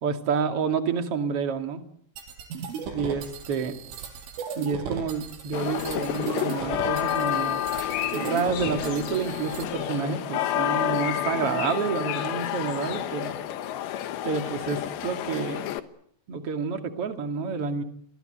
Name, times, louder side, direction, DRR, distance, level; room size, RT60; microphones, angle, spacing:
voice 1, 0.0-1.8 2.9-3.7 4.6-7.6 8.1-13.3 14.2-15.7 16.3-17.8, right 5 dB, 40° right, 6 dB, 2.2 m, -29 dB
sound 1, 2.2-9.7, right 6 dB, 85° right, 6.2 m, -37 dB
sound 2, 5.5-15.8, left 12 dB, 70° left, 3.3 m, -30 dB
sound 3, 5.9-6.0 6.3-6.4 7.7-9.3 10.8-13.4, left 11 dB, 85° left, 5.3 m, -38 dB
29.5 x 23.0 x 7.9 m, 0.69 s
omnidirectional pair, 5.7 m